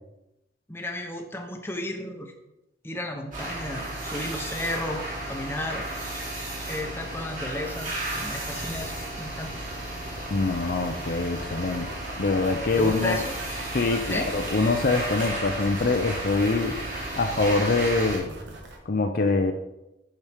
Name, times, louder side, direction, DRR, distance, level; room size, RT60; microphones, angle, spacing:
voice 1, 0.7-2.3 2.8-5.8 6.7-9.5 12.8-13.4 14.0-14.3, left 1 dB, 15° left, 3 dB, 0.8 m, -33 dB
sound 1, 3.3-18.2, right 1 dB, 45° right, 2.6 m, -34 dB
sound 2, 7.8-18.8, right 1 dB, 80° right, 1.4 m, -43 dB
voice 2, 10.3-11.9 12.2-13.2 13.7-16.8 17.2-18.3 18.9-19.5, left 3 dB, 55° left, 7 dB, 0.6 m, -24 dB
8.0 x 6.2 x 3.5 m, 0.91 s
head